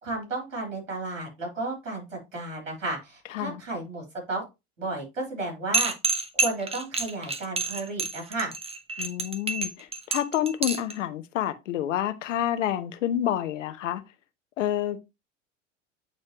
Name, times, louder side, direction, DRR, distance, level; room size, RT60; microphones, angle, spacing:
voice 1, 0.0-4.4 4.8-5.9 6.3-8.5, right 2 dB, 85° right, 3.3 m, -33 dB
sound 1, 5.7-10.9, right 3 dB, 15° right, 1.0 m, -28 dB
voice 2, 9.0-14.0 14.6-15.1, left 11 dB, 75° left, 1.0 m, -28 dB
9.2 x 4.3 x 2.9 m
hypercardioid pair, 80°, 37 cm